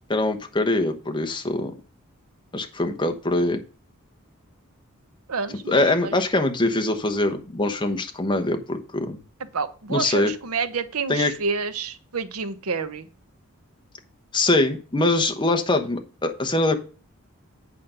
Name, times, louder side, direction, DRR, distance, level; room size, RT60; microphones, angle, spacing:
voice 1, 0.1-1.7 2.5-3.6 5.5-9.2 9.9-10.3 11.1-11.3 14.3-16.8, left 2 dB, 20° left, 1.0 m, -23 dB
voice 2, 5.3-6.1 9.5-13.1, right 5 dB, 85° right, 0.8 m, -29 dB
8.5 x 5.1 x 5.6 m
head